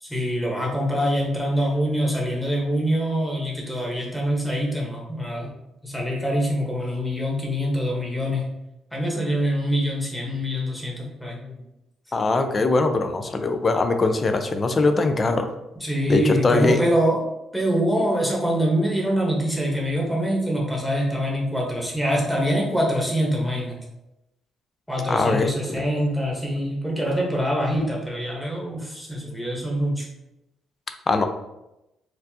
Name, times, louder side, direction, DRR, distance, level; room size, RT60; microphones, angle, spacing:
voice 1, 0.0-5.5 5.8-8.4 8.9-11.6 15.8-17.2 17.5-23.7 24.9-30.1, equal, 5° left, -3 dB, 1.2 m, -24 dB
voice 2, 12.1-15.5 16.1-16.8 25.1-25.8 31.1-31.3, left 3 dB, 35° left, 7 dB, 0.4 m, -21 dB
4.3 x 2.5 x 2.8 m, 0.91 s
cardioid pair, 90°, 0 cm